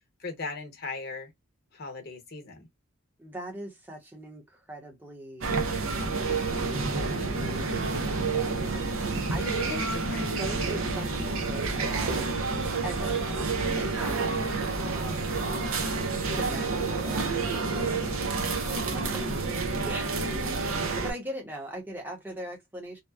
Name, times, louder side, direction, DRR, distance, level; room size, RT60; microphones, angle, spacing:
voice 1, 0.2-1.3 1.7-2.7 9.4-10.4, left 3 dB, 45° left, 0.9 m, -38 dB
voice 2, 3.2-5.5 6.9-9.8 10.4-12.3 12.8-14.4 14.8-15.4 16.3-19.4 19.8-23.0, right 1 dB, 10° right, 0.7 m, -41 dB
sound 1, 5.4-21.1, right 3 dB, 75° right, 0.7 m, -29 dB
2.8 x 2.1 x 2.3 m
head